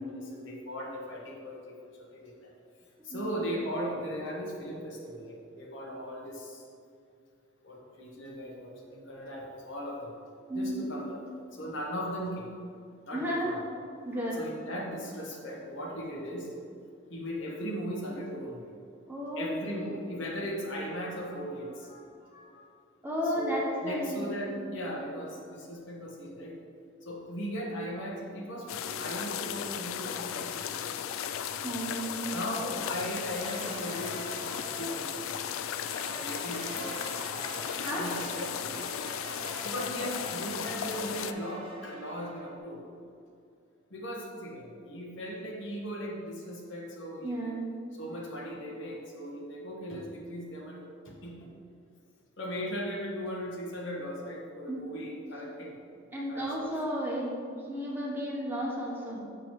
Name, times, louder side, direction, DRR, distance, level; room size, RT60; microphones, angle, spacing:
voice 1, 0.0-2.5 3.0-6.6 7.6-10.1 10.5-11.2 11.5-12.5 13.0-13.6 14.0-16.5 17.1-18.8 19.3-22.7 23.2-26.6 27.0-30.6 31.9-35.2 35.9-37.2 37.9-38.8 39.6-42.8 43.9-47.6 47.9-51.5 52.4-55.8 56.3-56.5, equal, 60° left, -2 dB, 1.1 m, -38 dB
voice 2, 10.5-10.9 13.1-13.5 14.0-14.4 19.1-20.5 23.0-24.3 24.7-24.8 31.6-32.3 37.8-38.1 47.2-47.7 54.7-54.8 56.1-59.2, equal, 10° right, -4 dB, 1.0 m, -33 dB
sound 1, 28.7-41.3, left 9 dB, 80° left, 0.3 m, -36 dB
sound 2, 33.3-35.2 35.8-42.6, right 2 dB, 25° right, 0.6 m, -44 dB
7.0 x 6.0 x 3.1 m, 2.4 s
head